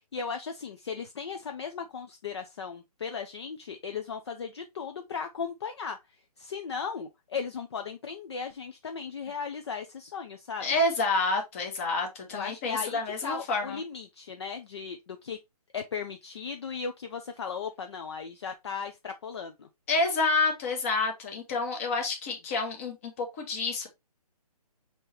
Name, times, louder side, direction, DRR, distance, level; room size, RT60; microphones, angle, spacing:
voice 1, 0.1-6.0 6.4-10.7 12.3-15.4 15.7-19.7, left 6 dB, 45° left, 0.5 m, -36 dB
voice 2, 10.6-13.8 19.9-23.9, left 3 dB, 20° left, 0.9 m, -28 dB
5.2 x 2.9 x 3.0 m
hypercardioid pair, 165°, 20 cm